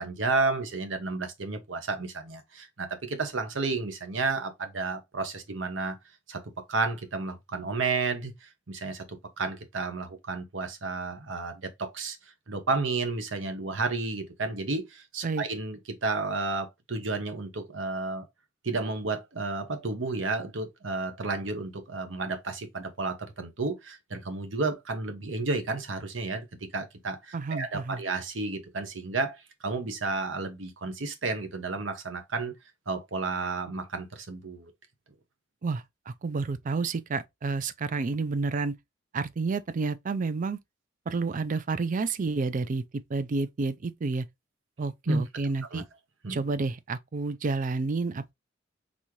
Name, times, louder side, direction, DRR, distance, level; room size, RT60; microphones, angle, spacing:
voice 1, 0.0-6.0 6.3-12.2 12.5-18.2 18.6-26.5 26.7-32.5 32.9-34.7 45.1-45.2 45.7-45.8 46.2-46.4, right 3 dB, 80° right, 1.0 m, -32 dB
voice 2, 27.3-28.0 35.6-38.8 39.1-40.6 41.1-44.3 44.8-45.9 46.3-48.3, right 4 dB, 45° right, 0.4 m, -30 dB
4.2 x 3.5 x 3.1 m
head